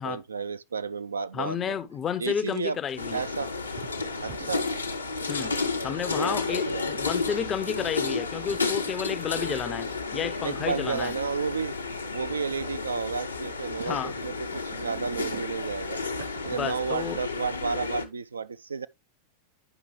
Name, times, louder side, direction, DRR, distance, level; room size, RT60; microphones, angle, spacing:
voice 1, 0.0-1.8 2.2-2.8 3.1-3.5 4.2-4.7 6.2-6.8 10.4-11.7 12.1-16.0 16.4-18.9, right 5 dB, 75° right, 0.3 m, -32 dB
voice 2, 1.3-3.2 5.3-11.1 13.8-14.1 16.5-17.2, left 8 dB, 25° left, 0.5 m, -31 dB
sound 1, 2.3-3.0 3.8-4.6 5.3-6.3 7.3-8.8 9.9-10.9 12.4-12.8 13.6-15.8 16.2-17.3, right 8 dB, 45° right, 0.8 m, -47 dB
sound 2, 3.0-18.0, left 4 dB, 80° left, 0.8 m, -32 dB
9.8 x 5.3 x 3.1 m
figure-of-eight pair, 90°, 0 cm